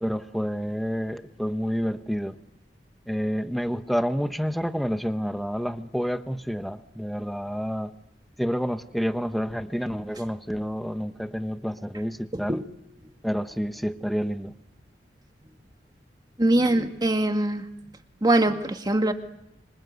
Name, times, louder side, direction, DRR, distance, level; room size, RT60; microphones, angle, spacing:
voice 1, 0.0-2.4 3.1-7.9 8.4-12.6 13.2-14.5, equal, ahead, 1.0 m, -29 dB
voice 2, 12.3-12.6 16.4-17.6 18.2-19.1, right 1 dB, 25° right, 1.9 m, -22 dB
26.5 x 26.0 x 8.2 m
head